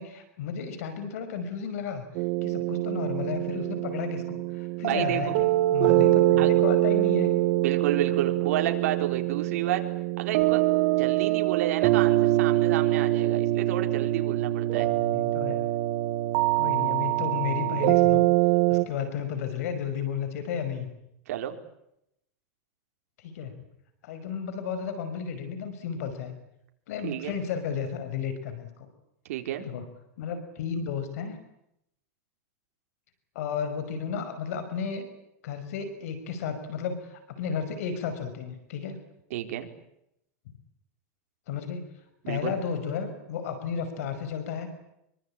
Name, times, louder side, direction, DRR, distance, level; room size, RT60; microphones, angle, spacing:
voice 1, 0.0-2.1 2.4-7.3 14.8-15.6 16.6-18.3 18.7-20.9 23.2-23.6 24.0-26.4 26.9-28.7 29.6-29.8 30.2-31.4 33.4-35.1 35.4-39.0 41.5-41.8 42.3-44.7, left 7 dB, 70° left, 10 dB, 5.6 m, -33 dB
sound 1, 2.1-18.8, right 17 dB, 50° right, 1.4 m, -24 dB
voice 2, 4.8-5.3 6.4-6.5 7.6-9.8 10.2-10.6 11.0-14.9 21.3-21.5 27.0-27.4 29.3-29.7 39.3-39.7 42.2-42.6, right 12 dB, 70° right, 5 dB, 4.4 m, -30 dB
26.5 x 24.0 x 8.8 m, 0.81 s
supercardioid pair, 150°, 8 cm